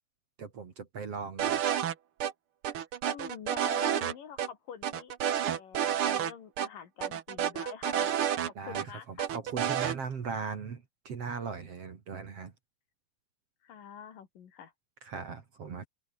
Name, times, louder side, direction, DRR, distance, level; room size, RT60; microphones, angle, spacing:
voice 1, 0.4-1.6 8.5-12.5 15.0-15.9, right 5 dB, 45° right, 2.9 m, -39 dB
sound 1, 1.4-1.9 2.2-2.3 2.6-4.1 4.4-4.5 4.8-6.3 6.6-6.7 7.0-8.8 9.2-10.0, right 10 dB, 70° right, 1.3 m, -30 dB
voice 2, 3.1-9.3 13.6-14.7, left 8 dB, 60° left, 3.8 m, -46 dB
open air
omnidirectional pair, 4.5 m